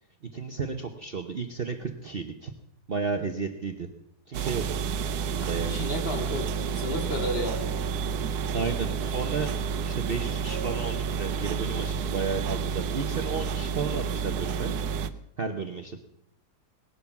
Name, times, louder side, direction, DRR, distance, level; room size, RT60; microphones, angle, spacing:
voice 1, 0.3-2.5 2.9-3.9 4.3-4.8 5.2-5.8 8.5-14.7 15.4-16.0, right 5 dB, 40° right, 5 dB, 1.0 m, -33 dB
sound 1, 4.3-15.1, right 6 dB, 70° right, 1.3 m, -30 dB
voice 2, 5.4-7.7, equal, 35° left, 2 dB, 2.7 m, -32 dB
19.0 x 11.0 x 5.9 m, 0.77 s
omnidirectional pair, 1.7 m